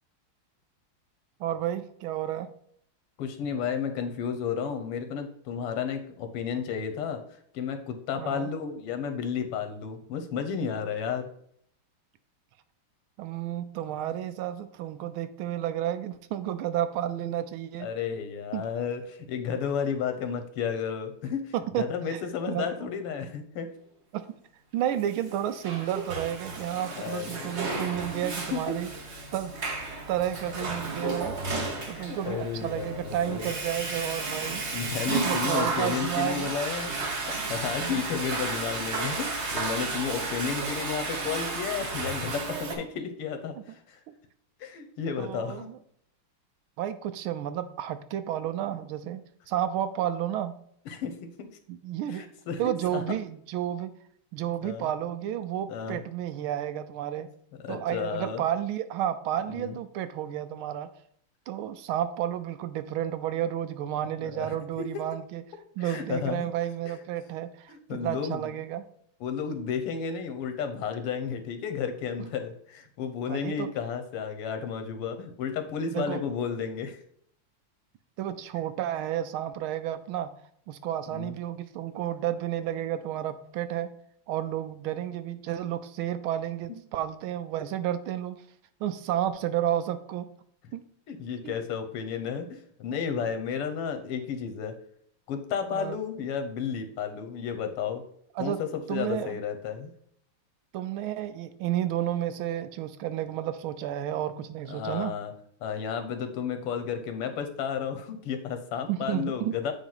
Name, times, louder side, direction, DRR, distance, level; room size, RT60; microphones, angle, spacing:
voice 1, 1.4-2.5 8.2-8.5 13.2-17.9 18.5-18.6 21.5-21.8 22.1-22.2 22.5-22.9 24.1-24.2 24.7-28.9 29.3-29.5 30.1-31.4 31.9-34.6 35.2-36.5 37.8-38.0 45.2-45.8 46.8-49.2 49.5-50.5 51.7-52.2 52.6-53.9 54.3-57.3 57.7-60.9 61.5-65.4 65.8-68.8 73.3-73.7 75.9-76.2 78.2-80.3 80.7-83.9 84.3-88.4 88.8-90.3 90.7-90.8 91.4-91.5 95.7-96.0 98.4-98.6 98.9-99.4 100.7-105.1 108.9-109.6, right 11 dB, 75° right, 11 dB, 1.4 m, -31 dB
voice 2, 3.2-7.2 7.5-11.3 17.8-23.7 27.0-27.7 28.2-28.8 31.8-33.5 34.7-44.0 44.6-45.7 50.9-51.5 52.1-53.0 54.6-54.9 55.7-56.0 57.6-58.4 59.5-59.8 64.2-64.9 65.8-66.5 66.9-67.0 67.7-68.5 69.2-77.0 81.1-81.3 91.1-94.7 95.3-98.0 98.4-99.9 104.7-105.3 105.6-109.7, left 7 dB, 90° left, 7 dB, 1.9 m, -32 dB
Water / Toilet flush, 25.3-42.7, right 3 dB, 40° right, 1.1 m, -33 dB
8.8 x 3.1 x 5.6 m, 0.66 s
omnidirectional pair, 2.4 m